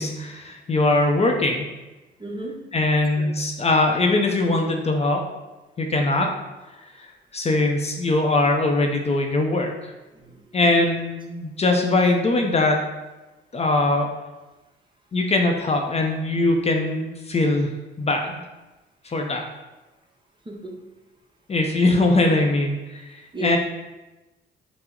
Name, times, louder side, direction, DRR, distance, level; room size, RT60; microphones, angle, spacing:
voice 1, 0.0-1.6 2.7-5.2 5.8-6.3 7.0-7.1 7.3-9.9 10.5-12.9 13.5-14.1 15.1-17.7 18.0-18.4 19.0-19.4 21.5-23.6, left 2 dB, 30° left, 2 dB, 0.5 m, -21 dB
voice 2, 2.2-2.6 3.2-3.3 10.1-11.0 20.5-20.7 23.3-23.6, right 2 dB, 25° right, 1 dB, 0.8 m, -34 dB
5.7 x 2.0 x 3.7 m, 1.1 s
cardioid pair, 90°, 20 cm